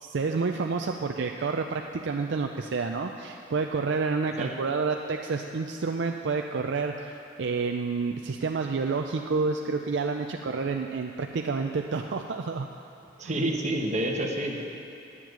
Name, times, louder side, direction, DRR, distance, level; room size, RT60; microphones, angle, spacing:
voice 1, 0.0-7.1 7.4-12.7 13.2-13.3, right 4 dB, 65° right, 3 dB, 0.5 m, -29 dB
voice 2, 13.2-14.6, right 1 dB, 40° right, 1 dB, 1.2 m, -28 dB
9.7 x 7.4 x 9.0 m, 2.7 s
head